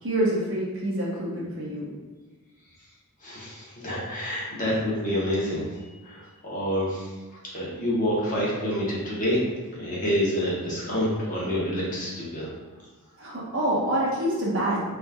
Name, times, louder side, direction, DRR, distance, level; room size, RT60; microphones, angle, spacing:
voice 1, 0.0-1.9 13.2-14.8, right 1 dB, 60° right, -5 dB, 1.1 m, -26 dB
voice 2, 3.2-5.6 6.0-7.1 7.5-9.4 9.7-12.5, equal, 35° left, -6 dB, 1.1 m, -27 dB
4.2 x 3.4 x 2.4 m, 1.3 s
head